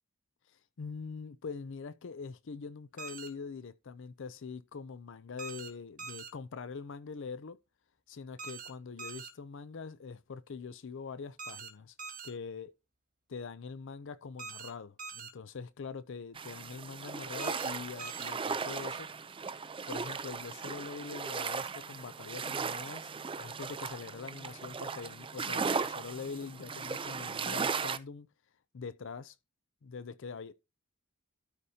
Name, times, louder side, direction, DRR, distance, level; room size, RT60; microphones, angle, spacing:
voice 1, 0.5-7.6 8.1-12.0 12.2-12.7 13.3-19.1 19.9-23.1 23.4-28.3 28.7-29.4 29.8-30.5, left 5 dB, 65° left, 0.5 m, -43 dB
sound 1, 3.0-3.3 5.4-5.7 6.0-6.3 8.4-8.7 9.0-9.3 11.4-11.7 12.0-12.3 14.4-14.7 15.0-15.3 17.4-17.7 18.0-18.3, right 5 dB, 40° right, 1.4 m, -43 dB
sound 2, 16.4-28.0, right 5 dB, 25° right, 0.5 m, -37 dB
12.5 x 5.1 x 2.8 m
head